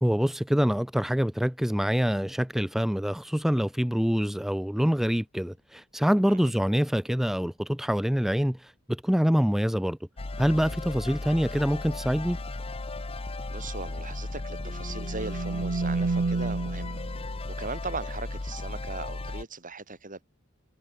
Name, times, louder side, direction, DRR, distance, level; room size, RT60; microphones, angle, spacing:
voice 1, 0.0-10.0 10.4-12.4, equal, ahead, 0.4 m, -25 dB
sound 1, 10.2-19.4, left 2 dB, 25° left, 0.7 m, -35 dB
voice 2, 13.5-17.0 17.6-20.2, right 3 dB, 40° right, 4.8 m, -38 dB
sound 2, 14.6-17.2, right 3 dB, 60° right, 0.6 m, -30 dB
head